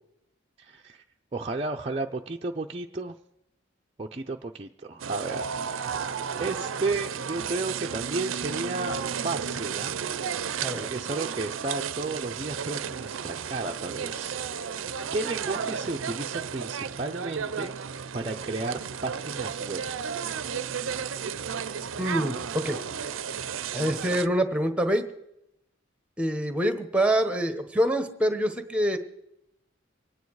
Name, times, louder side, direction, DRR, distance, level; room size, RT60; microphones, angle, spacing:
voice 1, 0.6-1.0 1.3-3.2 4.0-5.4 6.4-10.0 10.4-14.8 15.1-17.7 18.1-19.8, right 3 dB, 30° right, 1 dB, 0.5 m, -33 dB
sound 1, 5.0-24.3, right 7 dB, 80° right, 0.5 m, -33 dB
voice 2, 22.0-22.8 23.7-25.0 26.2-29.0, equal, 5° right, 9 dB, 1.1 m, -25 dB
24.5 x 9.5 x 4.7 m, 0.82 s
head